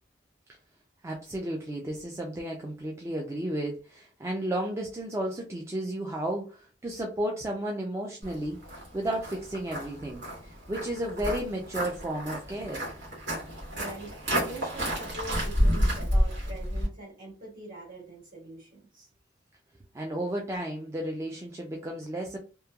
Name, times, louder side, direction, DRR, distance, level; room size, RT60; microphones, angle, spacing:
voice 1, 1.0-8.6 8.9-12.9 19.9-22.4, right 1 dB, 15° right, 0.3 m, -33 dB
Walk footsteps, 8.2-16.9, equal, 75° right, 1.3 m, -30 dB
voice 2, 13.7-19.1, right 2 dB, 50° right, 1.5 m, -43 dB
3.0 x 2.2 x 2.2 m
head